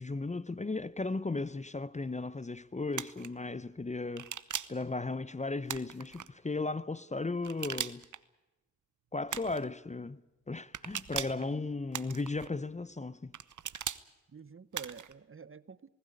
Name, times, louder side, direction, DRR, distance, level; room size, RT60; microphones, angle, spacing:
voice 1, 0.0-4.3 4.7-8.0 9.1-10.2 10.5-13.3, left 3 dB, 20° left, 0.7 m, -36 dB
sound 1, 2.9-3.3 4.2-4.8 5.7-6.3 7.4-8.2 9.3-9.7 10.7-11.4 11.9-12.5 13.3-14.0 14.7-15.1, right 8 dB, 65° right, 0.9 m, -39 dB
voice 2, 11.4-11.7 14.3-15.9, right 6 dB, 40° right, 0.9 m, -49 dB
20.0 x 16.0 x 9.8 m
cardioid pair, 45°, 32 cm